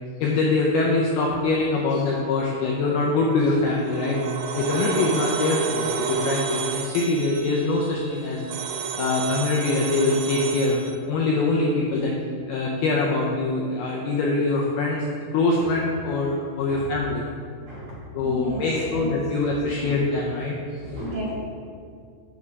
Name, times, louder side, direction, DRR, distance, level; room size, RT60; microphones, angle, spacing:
voice 1, 0.2-4.2 4.6-8.4 9.0-12.1 12.5-15.1 15.3-17.3 18.1-20.6 20.8-21.0, left 3 dB, 80° left, -2 dB, 2.3 m, -23 dB
sound 1, 3.5-10.9, right 6 dB, 80° right, 2.7 m, -30 dB
voice 2, 17.6-19.1 19.8-20.0 20.9-21.4, right 1 dB, 45° right, -8 dB, 3.2 m, -34 dB
7.9 x 7.3 x 4.7 m, 2.2 s
omnidirectional pair, 5.3 m